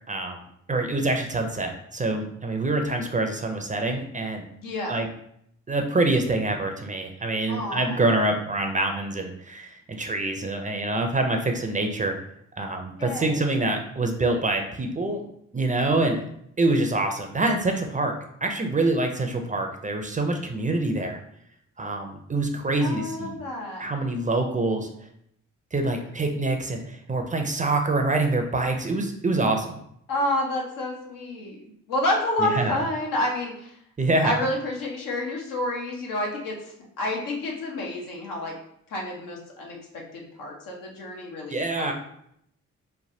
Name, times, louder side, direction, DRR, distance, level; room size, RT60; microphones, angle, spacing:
voice 1, 0.1-4.4 4.9-5.1 5.7-12.2 12.6-15.2 15.5-16.2 16.6-18.1 18.4-21.2 21.8-23.4 23.8-24.9 25.7-29.8 32.4-32.8 34.0-34.4 41.5-41.9, right 2 dB, 25° right, 4 dB, 0.5 m, -25 dB
voice 2, 4.6-5.0 7.5-8.0 13.0-13.3 22.8-23.8 30.1-31.6 31.9-33.7 34.2-38.5 38.9-41.9, left 1 dB, 75° left, -1 dB, 0.9 m, -29 dB
3.2 x 2.2 x 2.7 m, 0.72 s
supercardioid pair, 50°, 33 cm